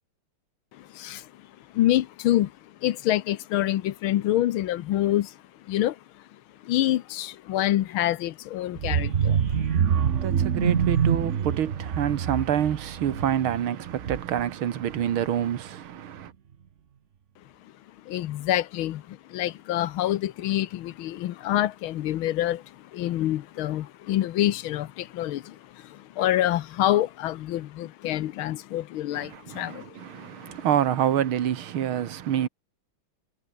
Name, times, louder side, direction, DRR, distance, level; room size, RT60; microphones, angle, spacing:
voice 1, 0.7-1.5 1.7-5.4 5.6-6.0 6.6-9.8 17.6-17.7 18.0-30.6, left 13 dB, 80° left, 1.6 m, -27 dB
sound 1, 8.8-14.5 14.9-15.2 15.5-15.6, right 8 dB, 45° right, 1.1 m, -25 dB
voice 2, 9.9-16.3 29.1-32.5, right 10 dB, 80° right, 2.2 m, -27 dB
omnidirectional pair, 2.3 m